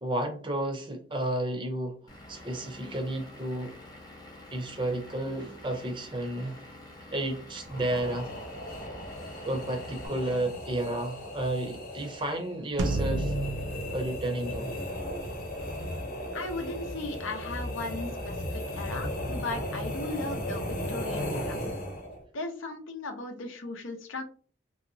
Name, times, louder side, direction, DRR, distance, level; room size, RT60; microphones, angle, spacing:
voice 1, 0.0-2.0 2.3-3.8 4.5-6.7 7.1-8.3 9.4-13.4 13.9-14.7, right 1 dB, 25° right, 0.5 m, -32 dB
Vehicle / Engine, 2.1-10.1, left 1 dB, 20° left, 0.6 m, -48 dB
sound 1, 7.7-22.2, equal, 50° left, 0.9 m, -36 dB
sound 2, 12.8-15.3, right 2 dB, 70° right, 0.4 m, -32 dB
voice 2, 16.3-21.6 22.3-24.2, left 3 dB, 90° left, 0.7 m, -37 dB
2.9 x 2.7 x 2.7 m
head